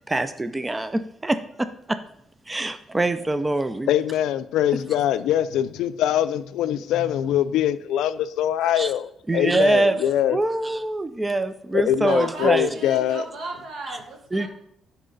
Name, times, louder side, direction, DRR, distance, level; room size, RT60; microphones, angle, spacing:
voice 1, 0.1-2.0 2.5-3.9 8.6-8.9 9.3-10.0 10.3-12.7 13.9-14.0 14.3-14.5, right 2 dB, 15° right, 11 dB, 0.4 m, -24 dB
voice 2, 3.9-10.4 11.7-13.2, left 11 dB, 85° left, 13 dB, 0.3 m, -23 dB
voice 3, 12.1-14.5, right 2 dB, 70° right, 3 dB, 1.6 m, -34 dB
10.5 x 4.2 x 3.9 m, 0.74 s
cardioid pair, 90°, 0 cm